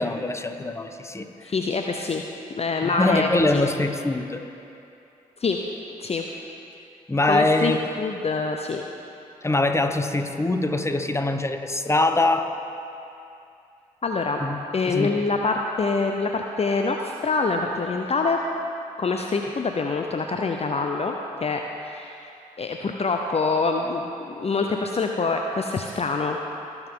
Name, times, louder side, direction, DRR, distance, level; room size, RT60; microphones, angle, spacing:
voice 1, 0.0-1.3 2.8-4.4 7.1-7.8 9.4-12.5 14.4-14.6 14.9-15.1, left 2 dB, 15° left, 7 dB, 1.1 m, -23 dB
voice 2, 1.4-2.2 2.5-3.6 5.4-5.6 6.0-6.3 7.2-7.7 8.0-8.8 14.0-14.4 14.7-18.4 19.0-22.3 22.6-26.4, left 4 dB, 40° left, 3 dB, 0.7 m, -25 dB
19.0 x 7.1 x 3.8 m, 2.7 s
hypercardioid pair, 45°, 16 cm